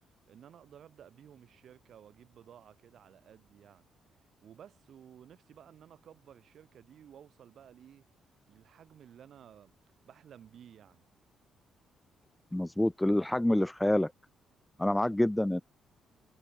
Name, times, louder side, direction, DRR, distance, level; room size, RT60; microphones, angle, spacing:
voice 1, 0.0-3.9 4.4-8.1 8.5-9.8 10.0-11.0, right 9 dB, 65° right, 2.0 m, -55 dB
voice 2, 12.5-14.1 14.8-15.6, left 1 dB, 5° left, 0.4 m, -27 dB
cardioid pair, 90°, 0 cm